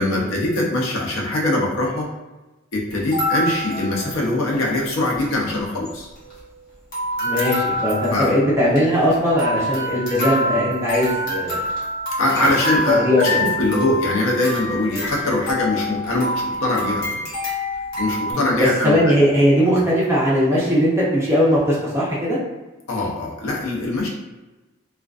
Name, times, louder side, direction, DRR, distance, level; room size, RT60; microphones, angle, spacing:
voice 1, 0.0-2.1 2.7-6.1 8.1-8.3 12.2-17.2 18.0-19.1 22.9-24.1, left 1 dB, 85° left, -2 dB, 0.6 m, -22 dB
sound 1, 2.9-4.6 4.9-5.0 5.1-5.4 5.8-6.6 6.9-18.3, left 1 dB, 55° left, 0.9 m, -27 dB
voice 2, 7.2-11.6 12.4-12.6 12.9-13.4 13.7-13.8 18.3-22.4, equal, 15° right, -7 dB, 0.5 m, -19 dB
2.4 x 2.2 x 2.3 m, 1.1 s
head